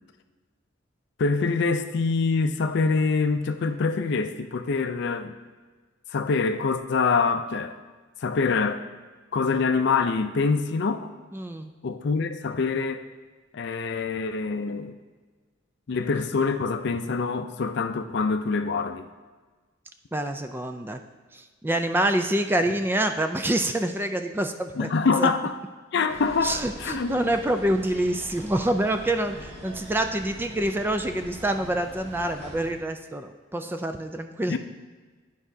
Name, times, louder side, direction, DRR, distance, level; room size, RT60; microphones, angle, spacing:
voice 1, 1.2-5.3 6.1-7.8 8.2-8.8 9.3-11.1 11.8-13.0 13.5-14.9 15.9-19.1 24.7-25.5 25.9-27.2 34.5-34.6, left 4 dB, 60° left, 9 dB, 0.4 m, -25 dB
voice 2, 11.3-11.7 20.1-21.0 21.3-24.9 25.2-25.3 26.4-34.6, right 1 dB, 10° right, 7 dB, 0.3 m, -26 dB
sound 1, 26.1-32.8, equal, 35° right, 1.3 m, -43 dB
11.0 x 4.9 x 2.7 m, 1.4 s
head